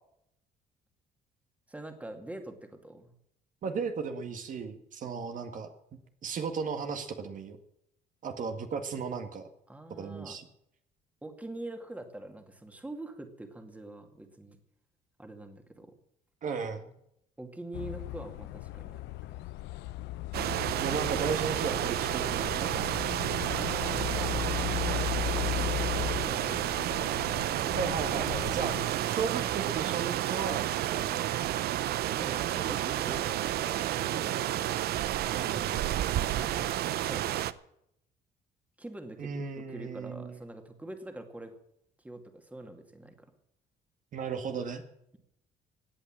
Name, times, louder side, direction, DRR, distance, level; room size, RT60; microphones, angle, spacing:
voice 1, 1.7-3.1 9.7-10.4 11.2-14.6 15.2-15.9 17.4-19.0 19.3-19.4 23.5-27.2 31.1-31.3 32.1-34.7 36.1-36.7 37.0-37.4 38.8-41.5 42.0-43.3, right 1 dB, 10° right, 5 dB, 2.3 m, -44 dB
voice 2, 3.6-5.7 6.2-7.6 8.2-9.5 10.0-10.4 16.4-16.9 20.8-22.9 27.7-28.7 29.1-31.2 35.3-35.8 39.2-40.4 44.1-44.8, right 5 dB, 50° right, 6 dB, 1.9 m, -35 dB
sound 1, 17.7-28.9, left 14 dB, 85° left, 0.6 m, -37 dB
sound 2, 20.3-37.5, right 13 dB, 70° right, 0.8 m, -31 dB
17.0 x 8.9 x 7.5 m, 0.76 s
cardioid pair, 110°, 17 cm